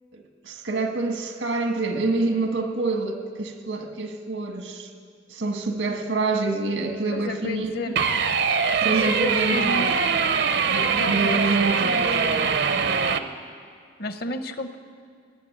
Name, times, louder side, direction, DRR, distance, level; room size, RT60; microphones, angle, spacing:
voice 1, 0.1-4.9 5.3-7.9 8.8-9.9 10.7-12.1, right 3 dB, 85° right, 4 dB, 1.7 m, -27 dB
voice 2, 7.1-8.1 8.9-10.0 11.0-11.5 12.0-12.6 14.0-14.8, left 2 dB, 55° left, 9 dB, 1.0 m, -32 dB
sound 1, 8.0-13.2, right 6 dB, 60° right, 0.7 m, -22 dB
18.5 x 7.8 x 9.9 m, 2.2 s
head